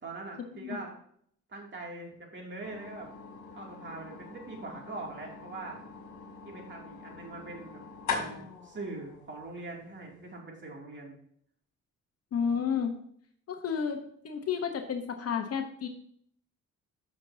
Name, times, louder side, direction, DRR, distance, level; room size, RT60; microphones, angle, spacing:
voice 1, 0.0-0.9 1.5-3.1 3.5-5.8 6.4-7.9 8.1-11.2, right 2 dB, 40° right, -1 dB, 2.7 m, -42 dB
sound 1, 2.6-10.4, left 5 dB, 75° left, 2.4 m, -42 dB
voice 2, 12.3-12.9 13.5-15.9, left 7 dB, 55° left, 5 dB, 1.1 m, -31 dB
13.5 x 6.3 x 2.8 m, 0.65 s
cardioid pair, 125°, 30 cm